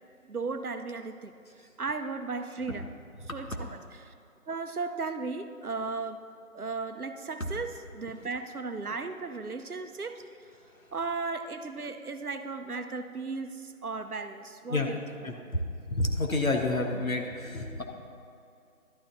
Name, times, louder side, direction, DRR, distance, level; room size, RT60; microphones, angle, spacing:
voice 1, 0.3-1.3 1.8-2.9 3.3-4.1 4.5-6.2 6.5-10.2 10.9-15.0, right 4 dB, 75° right, 9 dB, 0.8 m, -35 dB
voice 2, 15.9-17.8, left 2 dB, 65° left, 2 dB, 1.4 m, -29 dB
11.5 x 9.5 x 3.9 m, 2.5 s
figure-of-eight pair, 175°, 44 cm